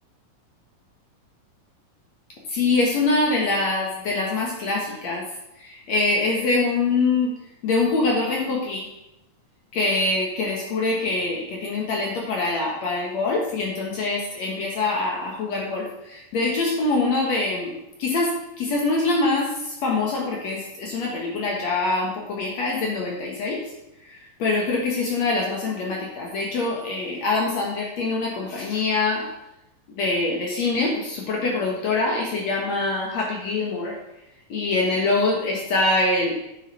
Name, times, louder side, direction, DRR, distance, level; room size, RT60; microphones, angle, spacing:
voice 1, 2.5-5.2 5.6-7.3 7.6-8.9 9.7-17.7 18.0-23.6 24.0-29.3 29.9-34.0 34.5-36.3, left 3 dB, 60° left, -1 dB, 2.6 m, -24 dB
9.0 x 7.1 x 5.6 m, 0.88 s
omnidirectional pair, 3.9 m